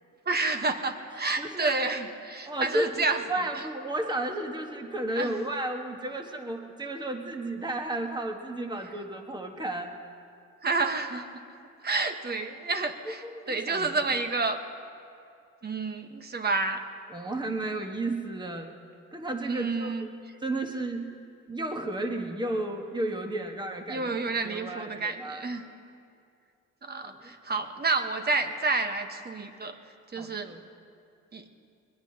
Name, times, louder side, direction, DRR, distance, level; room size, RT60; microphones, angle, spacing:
voice 1, 0.3-3.2 3.5-3.6 5.1-5.4 10.6-11.4 11.8-14.6 15.6-16.8 19.5-20.1 23.9-25.6 26.8-29.8 30.1-30.5 31.3-31.4, right 3 dB, 35° right, 6 dB, 1.3 m, -29 dB
voice 2, 1.4-1.7 2.5-9.9 13.3-13.9 17.1-18.7 19.1-20.1 20.4-21.1 21.5-24.1 24.4-25.5 27.0-27.3 30.2-30.6, right 1 dB, 15° right, 3 dB, 1.5 m, -33 dB
21.5 x 20.5 x 2.9 m, 2.4 s
cardioid pair, 90°, 30 cm